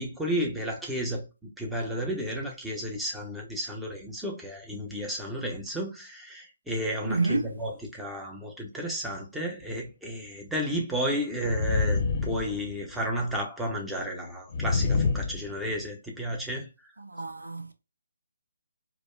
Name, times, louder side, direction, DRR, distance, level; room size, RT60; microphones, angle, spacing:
voice 1, 0.0-16.9, equal, 5° right, 0.7 m, -32 dB
voice 2, 7.1-7.5 17.0-17.7, right 3 dB, 80° right, 0.5 m, -28 dB
sound 1, 9.6-9.7 11.4-13.1 14.5-15.9, left 4 dB, 40° left, 0.5 m, -27 dB
4.9 x 2.1 x 2.3 m
figure-of-eight pair, 145°, 0 cm